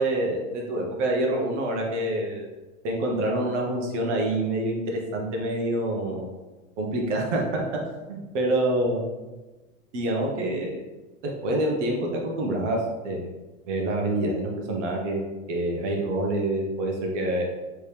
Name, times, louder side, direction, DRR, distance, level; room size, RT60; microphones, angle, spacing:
voice 1, 0.0-2.5 2.8-6.3 6.8-7.6 8.1-9.0 9.9-10.8 11.4-13.3 13.7-17.5, right 1 dB, 55° right, 0 dB, 1.2 m, -26 dB
4.0 x 3.5 x 3.4 m, 1.2 s
figure-of-eight pair, 100°, 44 cm